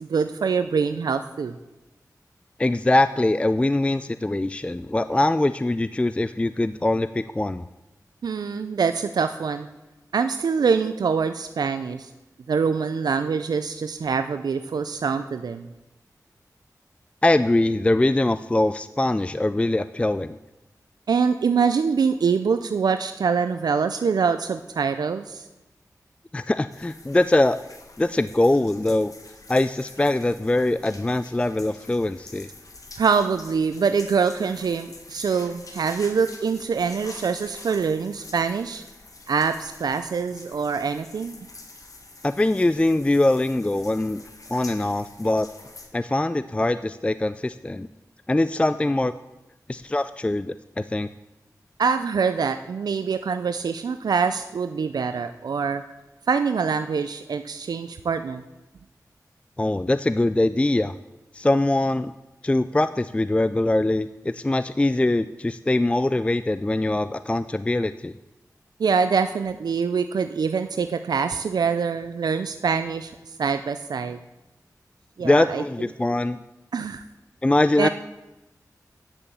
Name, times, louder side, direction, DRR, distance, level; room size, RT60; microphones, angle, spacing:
voice 1, 0.0-1.5 8.2-9.7 10.1-12.1 12.5-15.7 21.1-25.4 33.0-38.8 39.3-41.4 51.8-55.8 56.3-58.4 68.8-73.1 73.4-74.2 75.2-75.6 76.7-77.0 77.8-77.9, right 5 dB, 85° right, 10 dB, 0.4 m, -24 dB
voice 2, 2.6-7.7 17.2-20.4 26.3-27.6 28.0-29.1 29.5-32.5 42.2-44.2 44.5-45.5 45.9-47.9 48.3-49.1 49.7-51.1 59.6-61.0 61.3-62.1 62.4-68.1 75.2-76.4 77.4-77.9, left 2 dB, 20° left, 13 dB, 0.3 m, -22 dB
sound 1, 26.7-45.9, left 2 dB, 60° left, 1.5 m, -46 dB
9.9 x 7.0 x 6.9 m, 1.0 s
cardioid pair, 50°, 7 cm